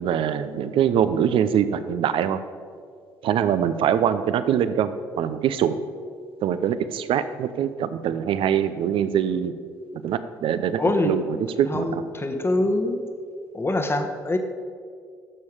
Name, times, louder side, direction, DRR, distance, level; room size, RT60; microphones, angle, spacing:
voice 1, 0.0-2.4 3.2-4.9 5.2-5.8 6.4-9.6 10.0-11.2 11.6-12.0, right 9 dB, 60° right, 12 dB, 0.6 m, -23 dB
voice 2, 10.8-11.4 11.7-13.0 13.5-14.4, left 2 dB, 25° left, 6 dB, 1.1 m, -24 dB
11.0 x 7.0 x 4.9 m, 2.1 s
hypercardioid pair, 50°, 10 cm